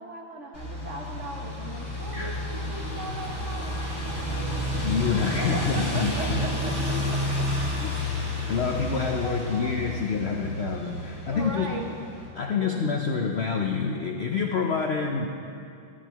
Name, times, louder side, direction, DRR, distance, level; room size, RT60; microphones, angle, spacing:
voice 1, 0.0-4.8 5.4-7.5 9.1-10.0 11.3-11.8, right 2 dB, 50° right, 1 dB, 0.9 m, -39 dB
sound 1, 0.5-12.3, left 1 dB, 55° left, 4.1 m, -31 dB
voice 2, 4.8-6.4 8.5-11.7 12.4-15.3, left 5 dB, 75° left, 2 dB, 0.6 m, -27 dB
15.0 x 14.0 x 3.0 m, 2.5 s
omnidirectional pair, 2.1 m